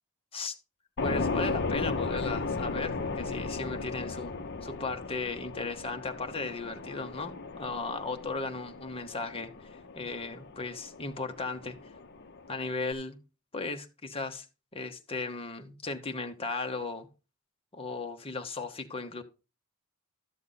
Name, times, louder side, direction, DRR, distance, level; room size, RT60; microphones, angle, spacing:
sound 1, 1.0-12.9, left 3 dB, 50° left, 0.8 m, -36 dB
voice 1, 1.0-11.8 12.5-13.2 13.5-14.5 14.7-17.1 17.7-19.2, left 3 dB, 25° left, 1.1 m, -36 dB
12.5 x 7.1 x 4.0 m
head